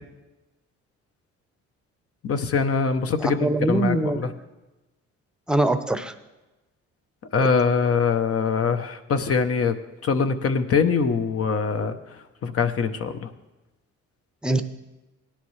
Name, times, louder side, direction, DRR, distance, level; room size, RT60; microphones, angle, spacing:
voice 1, 2.2-4.3 7.3-9.7 10.0-12.0 12.4-13.3, left 5 dB, 50° left, 8 dB, 0.8 m, -23 dB
voice 2, 3.2-4.3 5.5-6.1 14.4-14.6, right 2 dB, 5° right, 9 dB, 0.7 m, -23 dB
17.5 x 10.0 x 3.2 m, 1.1 s
cardioid pair, 90°, 30 cm